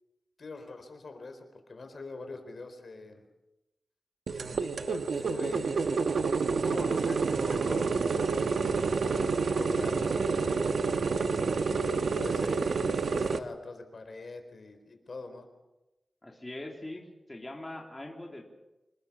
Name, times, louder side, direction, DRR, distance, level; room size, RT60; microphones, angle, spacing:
voice 1, 0.4-3.2 4.3-5.8 6.6-8.5 9.0-10.7 11.8-15.5, left 3 dB, 55° left, 7 dB, 4.1 m, -43 dB
sound 1, 4.3-13.4, right 4 dB, 80° right, 1.2 m, -28 dB
voice 2, 16.2-18.4, left 1 dB, 15° left, 0 dB, 3.3 m, -42 dB
27.0 x 19.5 x 7.1 m, 0.99 s
wide cardioid pair, 115°, 0 cm